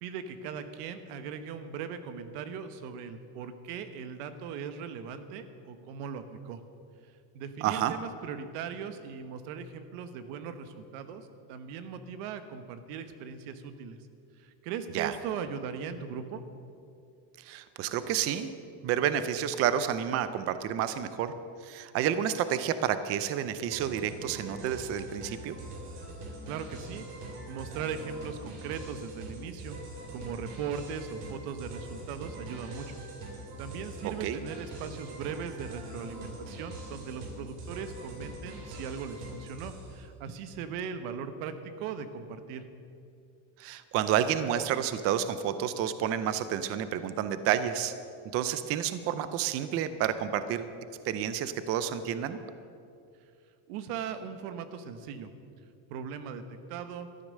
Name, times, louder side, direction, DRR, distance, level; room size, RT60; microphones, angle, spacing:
voice 1, 0.0-6.6 7.3-14.0 14.4-16.4 26.3-29.8 30.1-32.9 33.6-42.6 53.7-55.3 55.9-56.4 56.7-57.1, right 7 dB, 90° right, 10 dB, 1.3 m, -39 dB
voice 2, 7.6-7.9 14.9-15.1 17.4-18.5 18.8-21.3 21.6-25.6 34.2-34.4 43.6-47.9 48.3-50.6 51.0-52.4, right 10 dB, 35° right, 12 dB, 0.4 m, -30 dB
sound 1, 23.7-40.0, right 1 dB, 65° right, 3.7 m, -43 dB
13.0 x 10.5 x 6.5 m, 2.5 s
cardioid pair, 165°, 46 cm